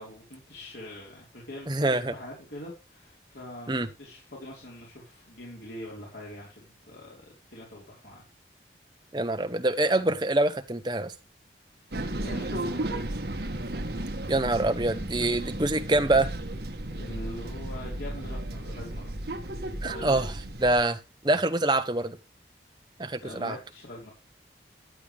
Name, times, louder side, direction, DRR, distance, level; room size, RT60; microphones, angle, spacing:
voice 1, 0.0-8.3 11.9-13.2 15.1-15.3 16.9-19.1 19.5-19.6 19.9-20.2 23.2-24.1, left 1 dB, 80° left, -4 dB, 4.8 m, -43 dB
voice 2, 1.7-2.1 3.7-3.9 9.1-11.1 14.3-16.3 19.8-20.3 20.6-22.2 23.0-23.6, right 2 dB, 25° right, 8 dB, 1.0 m, -25 dB
sound 1, 11.9-20.8, right 1 dB, 65° right, 1.4 m, -34 dB
14.0 x 10.0 x 3.5 m, 0.28 s
head